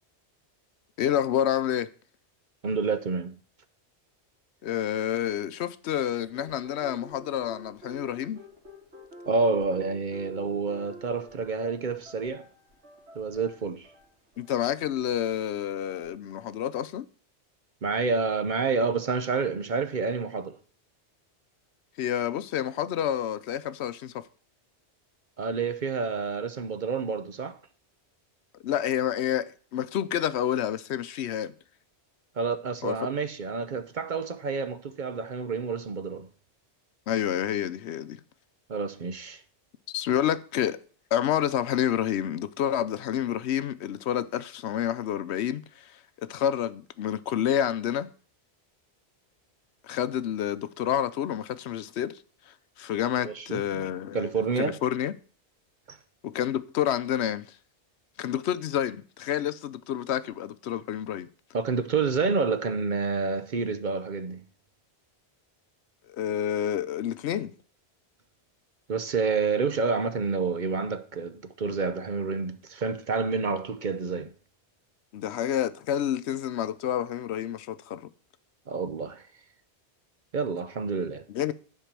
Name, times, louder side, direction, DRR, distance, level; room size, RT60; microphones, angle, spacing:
voice 1, 1.0-1.9 4.6-8.4 14.4-17.1 22.0-24.3 28.6-31.5 32.8-33.0 37.1-38.2 39.9-40.8 41.1-48.1 49.8-52.2 52.5-54.3 54.6-55.1 56.2-57.5 58.2-61.3 66.1-67.5 75.1-78.1 81.3-81.5, left 10 dB, 75° left, 0.9 m, -29 dB
voice 2, 2.6-3.3 9.3-12.4 13.2-13.9 17.8-20.5 25.4-27.6 32.4-36.3 38.7-39.4 53.2-53.8 54.1-54.8 55.9-56.0 61.5-64.4 68.9-74.3 78.7-79.2 80.3-81.2, right 4 dB, 50° right, 0.8 m, -28 dB
sound 1, 6.3-16.2, equal, 85° right, 2.6 m, -49 dB
10.0 x 4.6 x 7.4 m
omnidirectional pair, 1.1 m